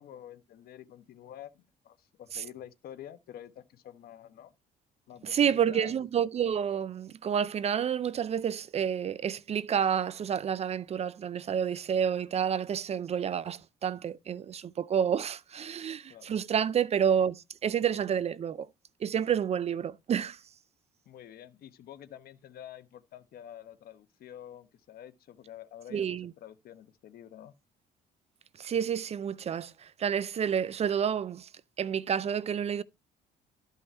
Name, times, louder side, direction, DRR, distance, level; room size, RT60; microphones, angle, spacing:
voice 1, 0.0-4.5 5.1-6.0 16.1-16.3 21.1-27.5, left 11 dB, 65° left, 1.2 m, -48 dB
voice 2, 5.2-18.7 19.0-20.4 25.9-26.3 28.6-31.5 31.8-32.8, right 8 dB, 40° right, 0.5 m, -29 dB
13.0 x 5.5 x 4.5 m
cardioid pair, 110°, 17 cm